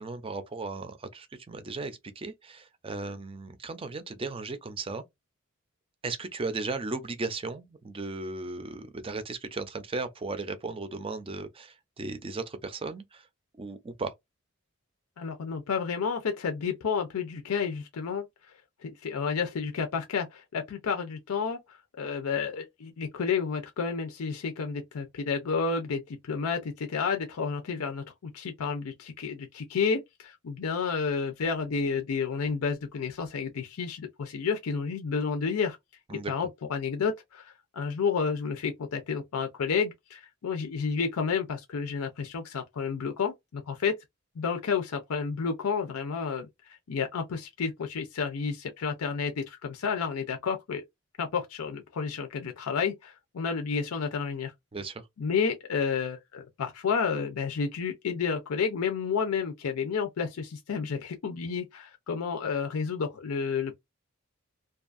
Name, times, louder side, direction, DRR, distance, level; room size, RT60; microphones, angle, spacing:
voice 1, 0.0-5.0 6.0-13.3 13.6-14.1 36.1-36.3 54.7-55.1, right 3 dB, 25° right, 0.4 m, -36 dB
voice 2, 15.2-18.3 18.8-35.8 36.1-43.9 44.4-50.8 51.2-54.5 55.2-63.7, left 5 dB, 85° left, 0.5 m, -31 dB
2.6 x 2.4 x 2.4 m
head